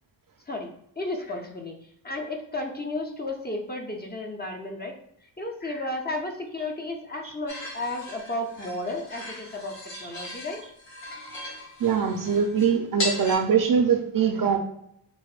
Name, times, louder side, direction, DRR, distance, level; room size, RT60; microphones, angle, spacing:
voice 1, 1.0-1.8 2.0-4.9 5.2-10.6, left 2 dB, 20° left, 1 dB, 0.6 m, -33 dB
sound 1, 7.5-13.4, left 1 dB, 75° left, 1.5 m, -37 dB
voice 2, 11.8-14.6, right 7 dB, 50° right, 5 dB, 0.6 m, -22 dB
6.2 x 2.1 x 2.4 m, 0.70 s
cardioid pair, 95°, 45 cm